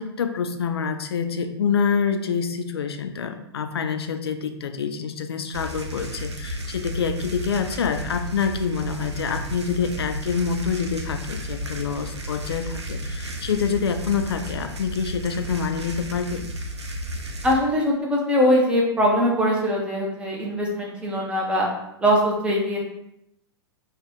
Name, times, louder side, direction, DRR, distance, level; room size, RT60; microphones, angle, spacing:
voice 1, 0.0-16.5, left 6 dB, 65° left, 7 dB, 0.4 m, -26 dB
sound 1, 5.5-17.5, equal, 75° right, 0.5 m, -33 dB
voice 2, 17.4-21.7 22.0-22.8, equal, 5° right, -3 dB, 0.8 m, -21 dB
3.7 x 2.3 x 3.4 m, 0.80 s
figure-of-eight pair, 100°, 14 cm